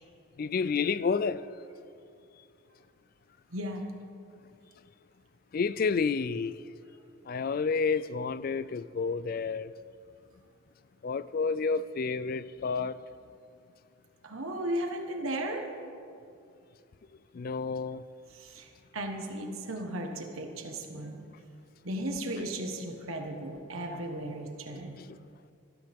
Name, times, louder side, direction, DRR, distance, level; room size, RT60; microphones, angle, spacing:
voice 1, 0.4-1.4 5.5-6.5 7.3-9.7 11.0-13.0 17.3-18.0, left 5 dB, 45° left, 0.3 m, -30 dB
voice 2, 3.5-3.8 14.2-15.6 18.3-21.2 21.8-25.0, right 1 dB, 75° right, 1.4 m, -35 dB
19.0 x 13.0 x 3.6 m
head